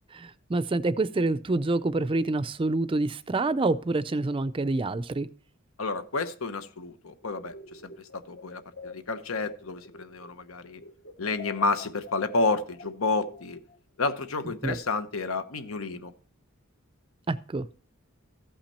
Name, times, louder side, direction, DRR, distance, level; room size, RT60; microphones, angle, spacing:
voice 1, 0.1-5.3 14.6-14.8 17.3-17.7, right 2 dB, 25° right, 0.4 m, -27 dB
voice 2, 5.8-10.8 11.2-13.6 14.0-16.1, left 3 dB, 85° left, 1.0 m, -30 dB
sound 1, 7.2-10.5 10.8-13.8, left 4 dB, 60° left, 1.1 m, -47 dB
14.5 x 5.9 x 4.3 m
head